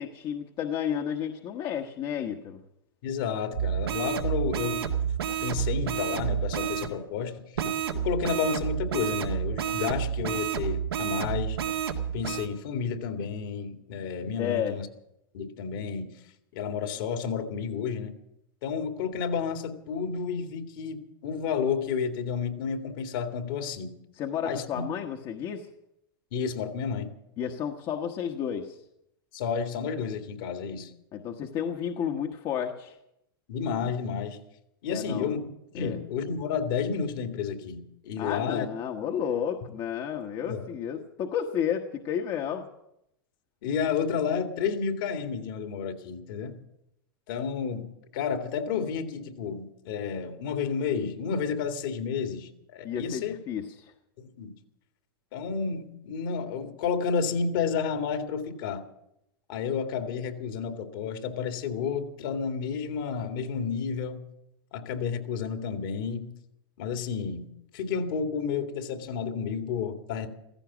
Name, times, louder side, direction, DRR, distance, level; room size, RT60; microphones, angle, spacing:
voice 1, 0.0-2.6 14.4-14.8 24.2-25.7 27.4-28.8 31.1-33.0 34.9-35.3 35.7-36.0 38.2-42.7 52.8-53.9, left 8 dB, 40° left, 3 dB, 1.3 m, -32 dB
voice 2, 3.0-4.9 5.4-7.4 7.9-11.6 12.1-14.9 15.3-16.1 16.5-18.2 18.6-24.0 24.5-24.8 26.3-27.1 29.3-30.9 33.5-34.4 34.8-35.4 35.8-38.7 40.4-40.6 43.6-46.6 47.3-53.3 54.2-54.5 55.3-58.8 59.5-64.2 64.7-66.3 66.8-70.3, left 6 dB, 60° left, 6 dB, 2.2 m, -31 dB
Alarm type sound, 3.5-6.9 7.6-12.5, right 8 dB, 90° right, 1.9 m, -30 dB
16.0 x 15.0 x 6.2 m, 0.81 s
hypercardioid pair, 110°, 12 cm